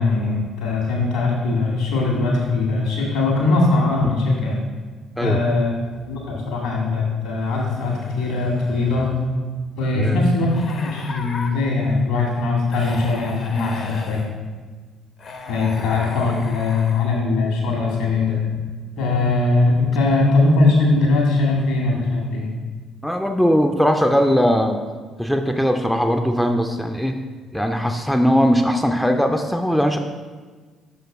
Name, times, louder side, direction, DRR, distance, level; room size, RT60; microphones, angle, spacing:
voice 1, 0.0-4.6 5.2-5.7 6.1-9.1 9.8-14.3 15.5-18.5 19.0-22.5, left 3 dB, 65° left, -2 dB, 1.7 m, -20 dB
sound 1, 5.8-6.4 7.4-9.3 10.5-11.5 12.7-14.3 15.2-17.2, left 3 dB, 50° left, 0.8 m, -36 dB
voice 2, 23.0-24.8 25.2-27.2 27.5-30.0, equal, ahead, 4 dB, 0.4 m, -19 dB
6.3 x 4.4 x 4.8 m, 1.4 s
figure-of-eight pair, 45°, 0 cm